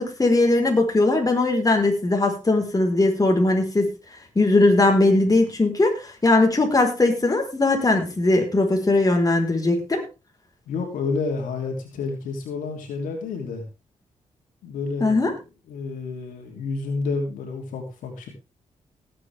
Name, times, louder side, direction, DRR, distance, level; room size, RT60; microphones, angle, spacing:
voice 1, 0.0-3.9 4.3-10.0 15.0-15.3, left 2 dB, 25° left, 3 dB, 4.8 m, -19 dB
voice 2, 10.7-13.6 14.6-18.3, left 4 dB, 90° left, 2 dB, 3.2 m, -30 dB
18.0 x 8.9 x 3.6 m, 0.28 s
cardioid pair, 60°, 13 cm